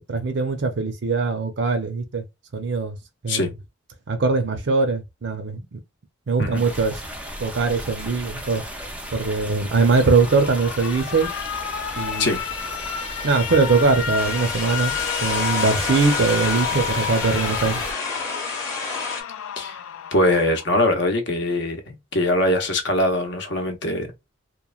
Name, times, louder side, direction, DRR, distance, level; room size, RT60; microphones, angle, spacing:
voice 1, 0.0-2.2 2.5-3.0 3.2-3.5 4.1-5.8 6.3-6.9 7.4-8.6 9.1-11.3 12.0-12.4 13.2-14.9 15.2-17.8, right 4 dB, 55° right, 0.5 m, -21 dB
sound 1, 6.5-17.9, equal, 5° right, 0.4 m, -35 dB
Alarm, 9.9-20.9, left 9 dB, 85° left, 0.3 m, -31 dB
sound 2, 14.1-19.2, left 3 dB, 15° left, 0.7 m, -29 dB
voice 2, 20.1-24.1, left 1 dB, 55° left, 0.7 m, -22 dB
3.0 x 2.1 x 2.3 m
head